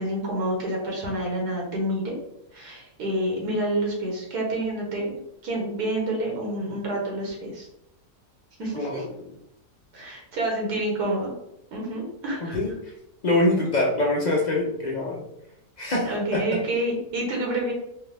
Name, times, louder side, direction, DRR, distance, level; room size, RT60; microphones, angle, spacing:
voice 1, 0.0-2.2 2.5-5.1 5.4-7.7 8.6-9.0 9.9-11.3 11.7-12.6 16.1-17.7, right 1 dB, 80° right, -2 dB, 1.8 m, -28 dB
voice 2, 13.2-15.2 15.8-16.1 16.3-16.4, left 2 dB, 85° left, -2 dB, 0.4 m, -24 dB
4.5 x 2.3 x 3.3 m, 0.81 s
omnidirectional pair, 1.7 m